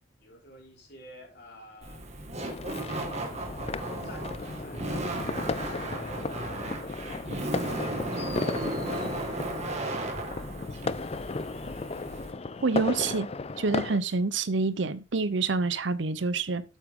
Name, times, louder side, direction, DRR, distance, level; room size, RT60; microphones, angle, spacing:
voice 1, 0.2-2.0 2.6-7.8 8.6-10.4 10.9-11.0 12.8-13.0, left 1 dB, 60° left, 4.2 m, -50 dB
Laughter, 1.8-12.3, right 2 dB, 35° right, 1.9 m, -35 dB
sound 1, 2.3-14.0, left 3 dB, 35° left, 0.5 m, -35 dB
voice 2, 12.6-13.3 13.6-16.6, right 4 dB, 70° right, 0.7 m, -27 dB
8.5 x 8.3 x 3.7 m
head